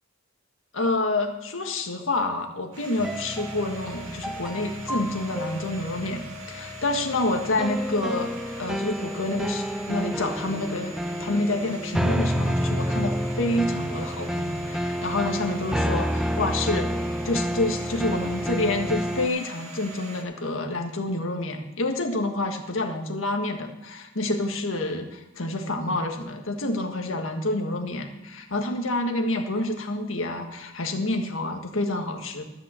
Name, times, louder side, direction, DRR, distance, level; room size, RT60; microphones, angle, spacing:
voice 1, 0.7-8.3 8.6-16.9 17.2-32.4, left 2 dB, 75° left, 4 dB, 1.7 m, -28 dB
Domestic sounds home sounds, 2.7-20.2, equal, 85° right, 2.2 m, -42 dB
sound 1, 3.0-19.3, equal, ahead, 0.3 m, -30 dB
13.0 x 5.7 x 7.6 m, 1.0 s
head